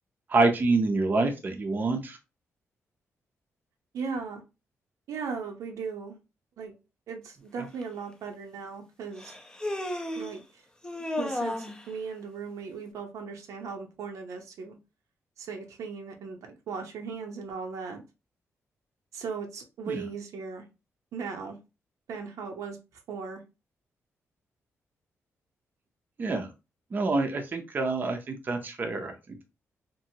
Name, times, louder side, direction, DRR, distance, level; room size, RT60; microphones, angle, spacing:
voice 1, 0.3-2.2 7.6-7.7 19.9-20.1 26.2-26.5 26.9-29.4, right 3 dB, 35° right, 4 dB, 0.5 m, -27 dB
voice 2, 3.9-4.4 5.1-6.2 6.6-6.8 7.1-9.3 10.2-10.4 11.2-14.7 15.4-18.0 19.1-20.6 21.1-21.6 22.1-22.8 23.1-23.4, right 5 dB, 90° right, 3 dB, 0.7 m, -37 dB
Human voice, 7.8-7.9 9.2-10.4 10.8-11.8, left 1 dB, 15° left, 0.4 m, -33 dB
2.8 x 2.6 x 2.7 m, 0.27 s
wide cardioid pair, 135°, 5 cm